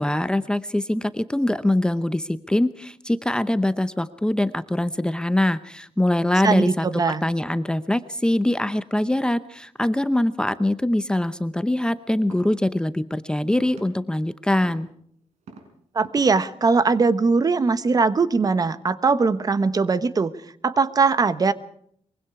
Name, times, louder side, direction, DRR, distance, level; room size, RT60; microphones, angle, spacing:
voice 1, 0.0-6.9 7.2-14.9, left 1 dB, 5° left, 12 dB, 0.8 m, -23 dB
voice 2, 6.4-7.2 15.9-20.3 20.6-21.5, right 4 dB, 35° right, 13 dB, 1.1 m, -20 dB
sound 1, 12.3-12.5 13.6-13.8 14.6-14.8 15.4-15.6 16.0-16.4, right 4 dB, 75° right, 6.0 m, -42 dB
23.5 x 23.0 x 4.8 m, 0.65 s
wide cardioid pair, 135°, 12 cm